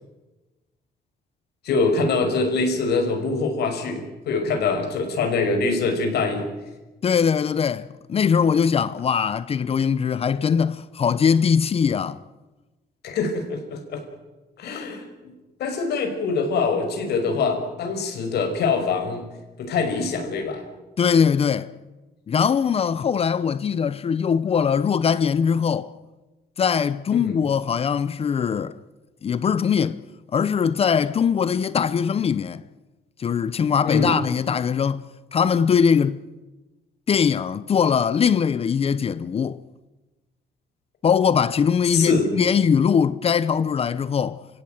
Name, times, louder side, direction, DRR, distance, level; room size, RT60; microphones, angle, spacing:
voice 1, 1.6-6.4 13.0-14.0 14.6-15.3 15.6-19.2 19.6-20.6 27.1-27.4 33.8-34.1 41.9-42.3, left 4 dB, 70° left, 5.9 m, -24 dB
voice 2, 7.0-12.2 21.0-21.7 22.3-25.9 26.6-28.8 29.2-30.0 30.3-32.6 33.2-35.0 35.3-36.2 37.1-39.6 41.0-44.4, left 7 dB, 35° left, 0.8 m, -21 dB
29.0 x 17.0 x 9.3 m
cardioid pair, 155°, 17 cm